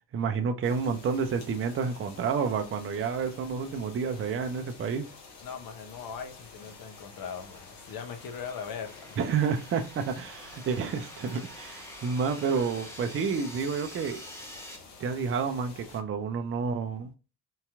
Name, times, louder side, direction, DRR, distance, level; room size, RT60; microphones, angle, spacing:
voice 1, 0.1-5.1 9.2-14.3 15.0-17.1, right 5 dB, 25° right, 0.5 m, -30 dB
sound 1, 0.6-16.0, left 4 dB, 85° left, 1.1 m, -50 dB
voice 2, 5.4-9.2, left 6 dB, 45° left, 0.8 m, -40 dB
sound 2, 5.8-14.8, equal, 5° left, 0.9 m, -48 dB
3.8 x 2.8 x 2.3 m
hypercardioid pair, 55°, 49 cm